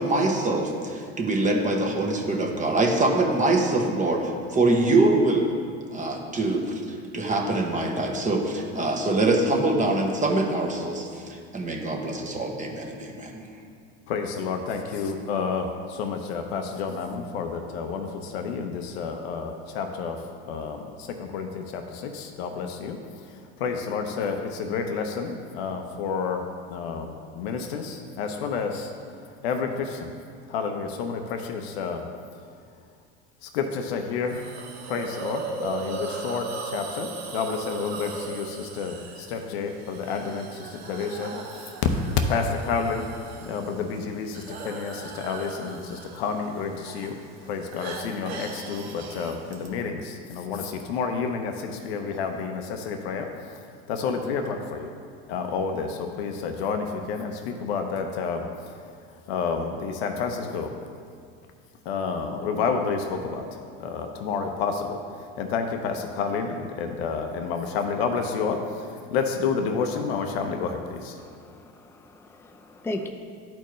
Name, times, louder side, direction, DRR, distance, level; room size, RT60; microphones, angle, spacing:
voice 1, 0.0-5.4 5.9-6.7 7.1-13.4, right 2 dB, 25° right, 1 dB, 1.2 m, -24 dB
voice 2, 14.1-23.0 23.6-26.4 26.7-28.9 29.4-30.1 30.5-32.1 33.4-34.4 34.9-37.1 37.3-41.3 42.3-43.1 43.5-47.2 47.5-53.3 53.9-54.9 55.3-58.5 59.3-60.7 61.9-65.0 65.4-68.6 69.1-71.1, left 5 dB, 85° left, 5 dB, 0.7 m, -30 dB
Hiss, 34.3-49.7, right 4 dB, 85° right, 1.1 m, -38 dB
voice 3, 71.2-73.1, left 1 dB, 10° left, 4 dB, 0.5 m, -37 dB
12.0 x 4.4 x 3.1 m, 2.3 s
supercardioid pair, 100°, 30 cm